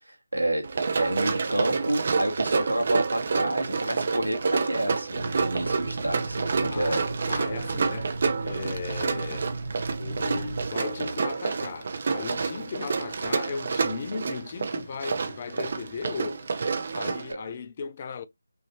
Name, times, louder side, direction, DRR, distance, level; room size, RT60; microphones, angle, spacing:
voice 1, 0.1-0.7 1.0-7.0, right 1 dB, 80° right, 1.9 m, -29 dB
Run, 0.6-17.3, right 4 dB, 45° right, 0.9 m, -29 dB
Water tap faucet / Sink (filling or washing), 5.1-10.7, right 3 dB, 90° left, 1.9 m, -35 dB
voice 2, 6.7-9.5 10.0-18.2, left 5 dB, 30° left, 0.5 m, -37 dB
5.6 x 2.9 x 2.9 m
figure-of-eight pair, 155°, 0 cm